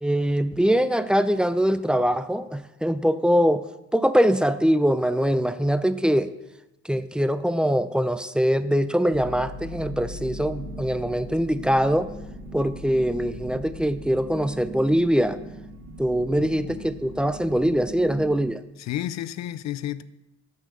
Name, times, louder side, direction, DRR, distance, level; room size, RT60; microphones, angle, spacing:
voice 1, 0.0-3.6 3.9-6.3 6.8-12.1 12.5-15.4 16.0-18.6, equal, 5° right, 0.4 m, -23 dB
sound 1, 9.1-18.4, equal, 75° right, 1.6 m, -39 dB
voice 2, 16.4-16.7 18.8-20.0, left 12 dB, 65° left, 0.5 m, -32 dB
6.6 x 6.6 x 6.2 m
cardioid pair, 90°, 30 cm